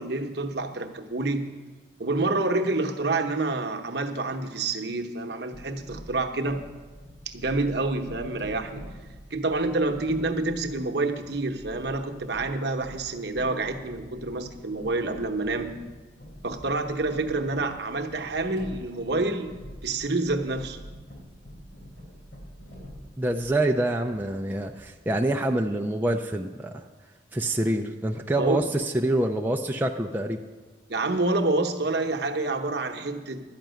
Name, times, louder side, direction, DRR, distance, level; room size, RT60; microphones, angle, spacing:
voice 1, 0.0-1.6 2.0-6.6 7.3-8.8 9.3-15.7 16.4-19.6 19.8-20.8 28.4-28.6 30.9-33.4, right 2 dB, 55° right, 4 dB, 0.9 m, -28 dB
sound 1, 5.5-23.7 24.0-25.0, equal, 60° left, 3.4 m, -45 dB
voice 2, 23.2-26.8 27.3-30.4, right 1 dB, 10° right, 1 dB, 0.4 m, -26 dB
12.0 x 5.9 x 9.1 m, 1.3 s
head